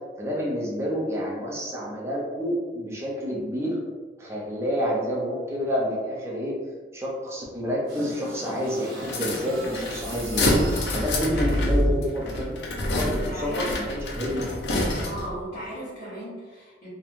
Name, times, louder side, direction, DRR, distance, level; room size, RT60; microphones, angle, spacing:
voice 1, 0.2-3.8 4.2-6.5 6.9-10.6 10.9-12.5 13.0-14.8, equal, 15° right, -4 dB, 0.5 m, -29 dB
sound 1, 7.9-12.2, equal, 55° right, 0.8 m, -29 dB
sound 2, 9.0-15.4, left 1 dB, 70° left, 0.5 m, -28 dB
voice 2, 11.3-11.8 13.0-13.8 15.0-16.9, equal, 50° left, -13 dB, 1.0 m, -37 dB
3.0 x 2.2 x 2.5 m, 1.4 s
head